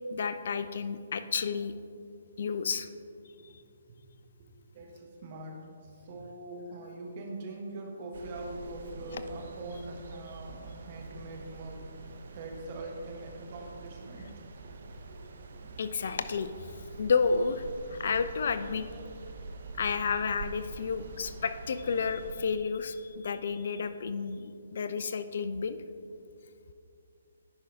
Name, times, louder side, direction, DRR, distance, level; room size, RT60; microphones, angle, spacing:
voice 1, 0.1-1.7 2.4-2.9 15.8-16.5 17.0-17.6 17.9-18.9 19.8-25.8, left 5 dB, 55° left, 11 dB, 0.4 m, -31 dB
voice 2, 4.7-11.9 12.3-14.3 15.1-15.2, right 2 dB, 40° right, 1 dB, 1.4 m, -42 dB
sound 1, 8.1-22.3, right 3 dB, 55° right, 0.7 m, -45 dB
10.5 x 5.5 x 3.7 m, 2.4 s
figure-of-eight pair, 135°, 0 cm